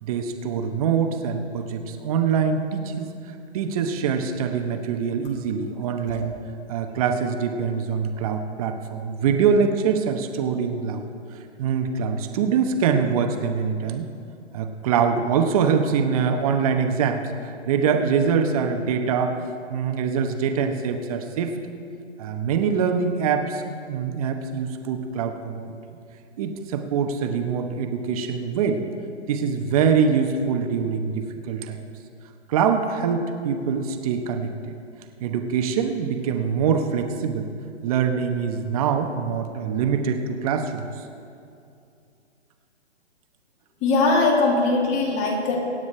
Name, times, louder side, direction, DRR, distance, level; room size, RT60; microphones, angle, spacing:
voice 1, 0.0-3.1 3.5-6.3 6.7-11.0 11.6-14.1 14.5-19.4 19.7-21.5 22.2-25.8 26.4-28.8 29.3-31.8 32.5-34.7 35.2-37.5 37.8-40.9, right 6 dB, 30° right, 5 dB, 1.1 m, -24 dB
voice 2, 43.8-45.6, left 3 dB, 20° left, 1 dB, 1.9 m, -20 dB
24.5 x 9.4 x 3.3 m, 2.5 s
hypercardioid pair, 145°, 35 cm